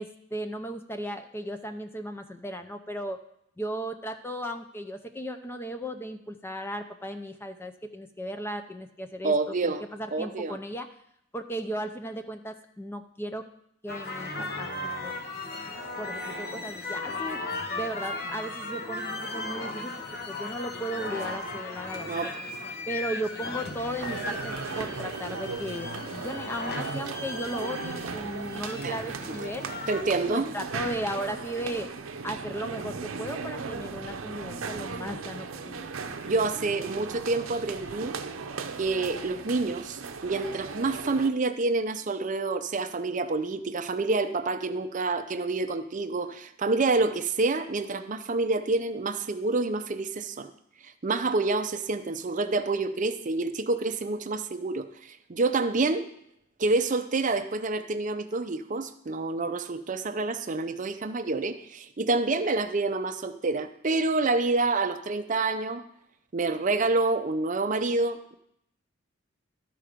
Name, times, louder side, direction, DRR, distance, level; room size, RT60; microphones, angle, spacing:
voice 1, 0.0-3.2 3.6-9.3 9.6-10.9 11.3-13.5 13.8-15.2 16.0-17.4 17.7-22.4 22.9-29.6 30.3-31.9 32.2-35.9, equal, 10° left, 7 dB, 0.4 m, -36 dB
voice 2, 9.2-9.8 10.1-10.6 22.0-22.3 28.8-29.0 29.3-29.4 29.9-30.5 36.3-38.1 38.8-50.5 50.8-56.1 56.6-65.8 66.3-68.3, right 3 dB, 40° right, 9 dB, 0.5 m, -28 dB
sound 1, 13.9-30.0, left 2 dB, 50° left, 0.9 m, -36 dB
sound 2, 24.0-41.3, right 4 dB, 85° right, 0.6 m, -37 dB
13.0 x 4.6 x 5.0 m, 0.74 s
head